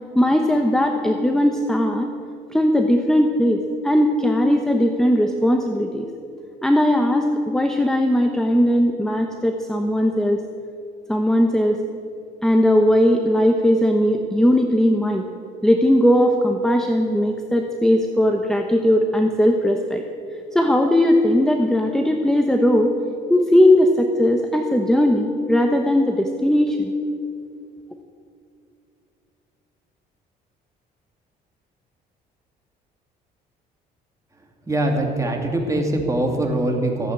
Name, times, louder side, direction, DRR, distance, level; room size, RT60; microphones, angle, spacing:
voice 1, 0.1-2.1 2.5-6.1 6.6-10.4 11.1-11.8 12.4-15.2 15.6-20.0 20.5-22.9 23.3-26.9, left 1 dB, 5° left, 4 dB, 0.9 m, -18 dB
voice 2, 34.7-37.1, right 1 dB, 20° right, 2 dB, 2.5 m, -22 dB
15.0 x 8.5 x 8.5 m, 2.5 s
cardioid pair, 110°, 17 cm